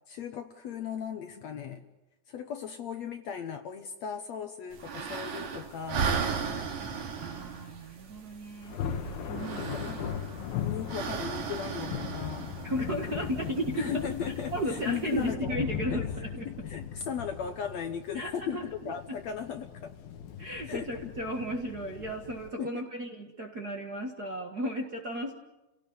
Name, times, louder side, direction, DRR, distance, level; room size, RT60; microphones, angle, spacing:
voice 1, 0.1-1.9 2.3-6.1 9.5-10.2 10.6-12.5 13.8-15.6 15.9-16.0 16.5-19.9 20.6-21.1 22.6-22.9, left 7 dB, 65° left, 7 dB, 1.9 m, -37 dB
sound 1, 4.7-15.3, right 6 dB, 60° right, 3.5 m, -37 dB
voice 2, 7.2-9.8 12.6-14.1 14.5-16.5 18.1-18.6 20.4-25.3, right 1 dB, 40° right, 1 dB, 1.4 m, -34 dB
Thunder, 8.6-22.5, left 8 dB, 85° left, 3.3 m, -38 dB
30.0 x 17.5 x 9.5 m, 1.0 s
omnidirectional pair, 4.1 m